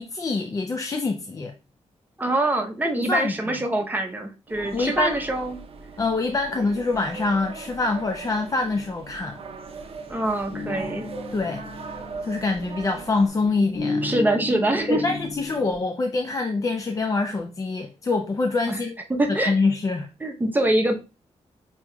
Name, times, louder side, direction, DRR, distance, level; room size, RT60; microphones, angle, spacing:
voice 1, 0.0-1.6 3.0-3.5 4.7-5.2 6.0-9.4 11.3-11.6 12.2-14.0 14.9-19.0 19.3-20.1, left 3 dB, 30° left, 0.4 m, -25 dB
voice 2, 2.2-5.6 10.1-11.1 14.0-15.0 18.7-18.8 19.1-19.6 20.2-21.0, right 1 dB, 15° right, 0.7 m, -24 dB
sound 1, 4.5-13.3, right 4 dB, 55° right, 0.6 m, -39 dB
sound 2, 9.1-15.8, left 3 dB, 60° left, 0.9 m, -34 dB
6.0 x 2.8 x 2.2 m
wide cardioid pair, 150°, 12 cm